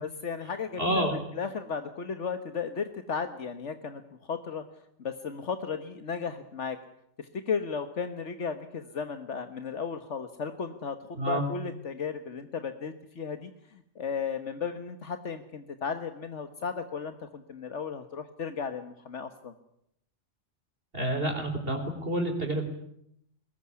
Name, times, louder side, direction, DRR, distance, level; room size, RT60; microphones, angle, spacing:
voice 1, 0.0-4.6 5.0-6.8 7.2-19.5, left 6 dB, 80° left, 9 dB, 1.7 m, -35 dB
voice 2, 0.8-1.2 11.2-11.4 20.9-22.6, right 1 dB, 50° right, 4 dB, 4.1 m, -28 dB
23.5 x 20.5 x 9.7 m, 0.74 s
omnidirectional pair, 1.2 m